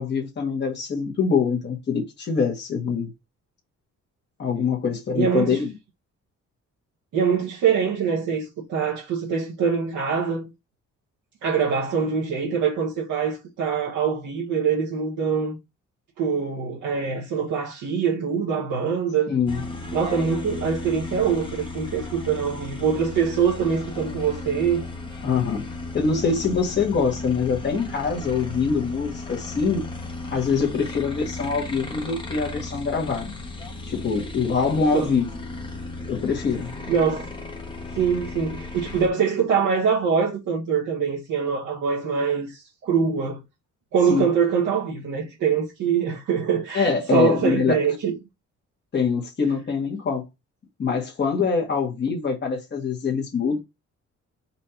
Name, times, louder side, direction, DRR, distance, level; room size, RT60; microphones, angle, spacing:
voice 1, 0.0-3.1 4.4-5.7 19.3-19.6 25.2-25.7 25.9-29.9 30.3-33.3 33.8-35.3 36.1-36.7 44.1-44.3 46.7-47.7 48.9-50.2 50.8-53.6, left 5 dB, 35° left, 1.3 m, -24 dB
voice 2, 5.1-5.6 7.1-10.5 11.4-15.6 16.2-19.3 19.9-24.8 34.9-35.1 36.9-37.3 37.9-43.4 43.9-48.2, right 6 dB, 80° right, 1.2 m, -24 dB
sound 1, 19.5-39.1, left 3 dB, 15° left, 1.0 m, -35 dB
4.2 x 2.7 x 4.3 m
cardioid pair, 145°, 30 cm